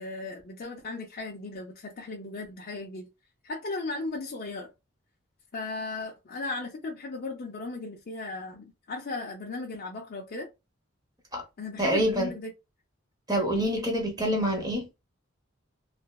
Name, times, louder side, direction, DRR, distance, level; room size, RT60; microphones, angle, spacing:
voice 1, 0.0-3.1 3.4-4.7 5.5-10.5 11.6-12.5, left 3 dB, 45° left, 0.5 m, -36 dB
voice 2, 11.8-12.3 13.3-14.9, equal, 20° right, 0.8 m, -26 dB
3.2 x 2.0 x 2.2 m
head